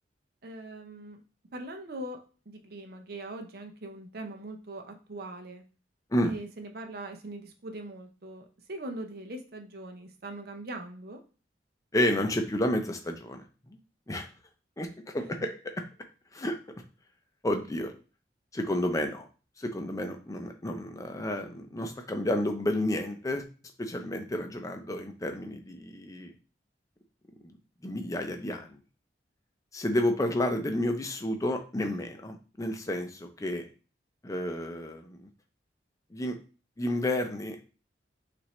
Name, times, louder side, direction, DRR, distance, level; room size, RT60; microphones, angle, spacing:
voice 1, 0.4-1.2 1.5-2.2 2.5-5.6 6.2-11.2 15.2-15.3, right 1 dB, 55° right, 5 dB, 0.7 m, -41 dB
voice 2, 11.9-13.8 14.1-14.3 14.8-14.9 15.1-15.3 16.3-16.6 17.4-17.9 18.5-19.3 19.6-23.4 23.8-26.3 27.4-27.5 27.8-28.8 29.7-33.7 34.2-35.3 36.1-36.4 36.8-37.6, left 1 dB, 20° left, 5 dB, 0.5 m, -31 dB
5.6 x 2.6 x 3.2 m, 0.36 s
head